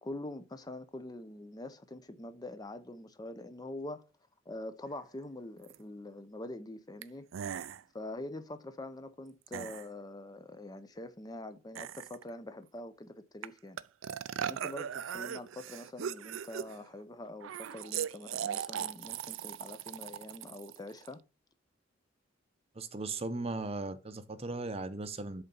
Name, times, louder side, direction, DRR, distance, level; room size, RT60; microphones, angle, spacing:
voice 1, 0.0-4.0 4.5-7.3 7.9-13.8 14.5-21.2, left 1 dB, 20° left, 0.5 m, -44 dB
sound 1, 5.7-5.8 7.0-7.1 7.3-7.8 9.5-9.8 11.8-12.3 13.4-13.5 13.8-16.9 17.4-21.1, right 9 dB, 75° right, 0.4 m, -39 dB
voice 2, 22.8-25.4, right 3 dB, 30° right, 0.6 m, -37 dB
7.8 x 4.0 x 5.3 m
head